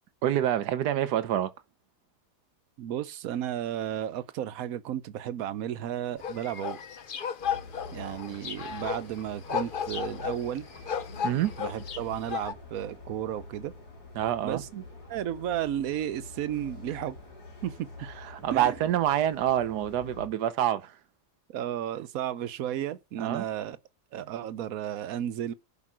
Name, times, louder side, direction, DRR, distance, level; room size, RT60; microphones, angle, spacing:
voice 1, 0.2-1.5 11.2-11.6 14.1-14.6 16.9-17.0 18.0-21.0 23.2-23.4, right 11 dB, 85° right, 1.4 m, -27 dB
voice 2, 2.8-6.8 7.9-10.7 11.6-13.7 14.4-14.8 15.1-17.2 17.6-17.9 18.5-18.7 21.5-23.8 24.1-25.5, right 11 dB, 65° right, 1.1 m, -33 dB
sound 1, 6.2-12.5, left 7 dB, 45° left, 0.7 m, -34 dB
sound 2, 7.4-20.3, left 3 dB, 75° left, 5.4 m, -46 dB
11.0 x 5.1 x 6.2 m
omnidirectional pair, 1.7 m